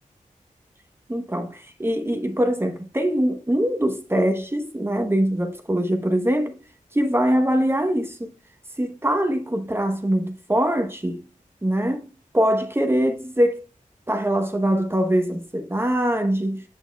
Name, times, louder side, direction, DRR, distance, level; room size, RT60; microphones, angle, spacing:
voice 1, 1.1-6.6 6.9-8.3 8.8-11.2 11.6-12.0 12.3-13.6 14.1-16.6, equal, 15° right, 0.9 m, -23 dB
8.3 x 6.8 x 2.3 m
wide cardioid pair, 80°, 14 cm